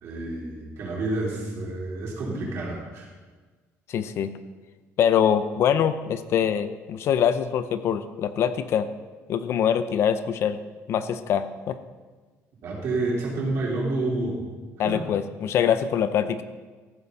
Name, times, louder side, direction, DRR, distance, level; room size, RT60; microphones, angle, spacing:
voice 1, 0.0-3.1 12.6-14.4 14.8-15.0, right 2 dB, 55° right, -3 dB, 3.8 m, -29 dB
voice 2, 3.9-4.3 5.0-8.9 9.3-10.6 10.9-11.8 14.8-16.4, left 8 dB, 55° left, 11 dB, 0.6 m, -24 dB
14.0 x 8.2 x 5.4 m, 1.4 s
cardioid pair, 175°, 5 cm